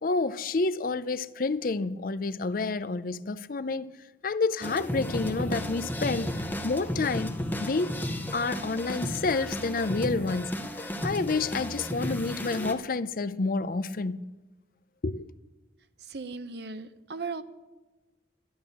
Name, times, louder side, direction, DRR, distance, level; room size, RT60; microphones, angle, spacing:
voice 1, 0.0-3.9 4.2-6.3 6.6-7.3 7.6-8.0 8.3-14.3 15.0-15.3, left 3 dB, 50° left, 0.5 m, -29 dB
sound 1, 4.6-12.7, left 1 dB, 10° left, 0.9 m, -33 dB
voice 2, 16.1-17.4, right 4 dB, 65° right, 0.8 m, -37 dB
11.5 x 11.0 x 7.1 m
head